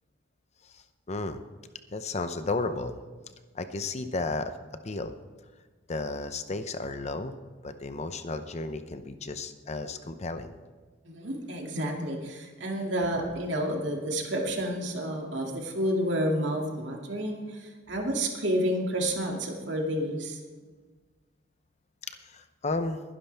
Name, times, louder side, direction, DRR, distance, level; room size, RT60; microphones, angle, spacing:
voice 1, 1.1-1.4 1.9-3.0 3.5-4.5 4.8-5.1 5.9-7.3 7.6-10.5 22.2-23.0, left 3 dB, 35° left, 9 dB, 0.7 m, -33 dB
voice 2, 11.0-20.4, equal, 65° right, 1 dB, 2.4 m, -30 dB
21.5 x 11.0 x 3.5 m, 1.4 s
head